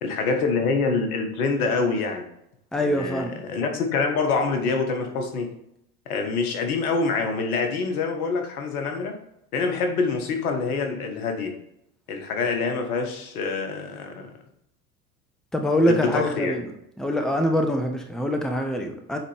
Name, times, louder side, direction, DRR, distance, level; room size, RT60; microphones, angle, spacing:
voice 1, 0.0-2.3 2.8-5.5 6.0-9.2 9.5-11.6 12.1-14.3 15.8-16.6, left 4 dB, 65° left, 4 dB, 1.7 m, -26 dB
voice 2, 2.7-3.4 15.5-16.6 17.0-19.2, equal, ahead, 4 dB, 1.0 m, -24 dB
9.0 x 4.1 x 3.4 m, 0.77 s
hypercardioid pair, 80°, 47 cm